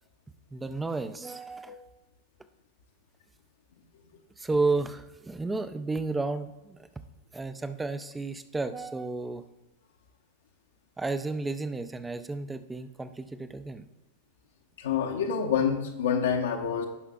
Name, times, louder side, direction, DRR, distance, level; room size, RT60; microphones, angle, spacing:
voice 1, 0.5-1.9 4.4-6.9 7.3-9.4 11.0-13.9, right 3 dB, 10° right, 12 dB, 0.5 m, -32 dB
voice 2, 14.8-16.9, left 7 dB, 65° left, 0 dB, 0.9 m, -27 dB
16.5 x 5.6 x 2.4 m, 1.0 s
figure-of-eight pair, 90°, 0 cm